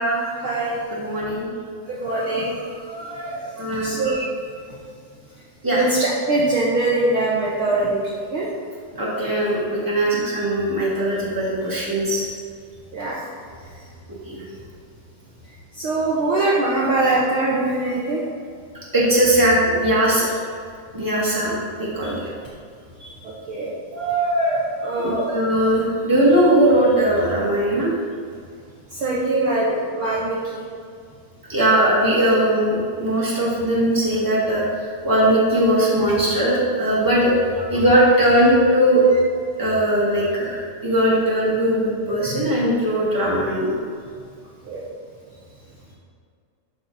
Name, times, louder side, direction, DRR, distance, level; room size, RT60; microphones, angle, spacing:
voice 1, 0.0-0.8 1.9-4.2 5.7-8.5 12.9-13.2 15.8-18.2 22.0-22.1 23.0-25.3 28.9-30.6 42.3-42.4 44.6-44.8, right 2 dB, 70° right, -5 dB, 1.2 m, -23 dB
voice 2, 0.9-1.5 3.6-3.9 5.6-5.9 9.0-12.2 14.3-14.4 18.9-20.3 20.9-21.5 21.8-22.3 25.3-27.9 31.5-37.3 37.7-39.0 39.6-43.7, right 1 dB, 10° right, -7 dB, 1.5 m, -19 dB
12.5 x 5.3 x 4.2 m, 2.2 s
omnidirectional pair, 3.6 m